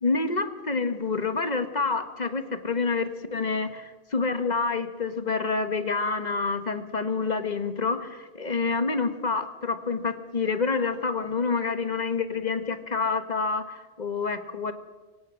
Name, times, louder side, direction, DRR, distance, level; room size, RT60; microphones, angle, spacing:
voice 1, 0.0-14.7, left 4 dB, 45° left, 9 dB, 1.4 m, -28 dB
24.0 x 17.5 x 6.3 m, 1.3 s
omnidirectional pair, 1.1 m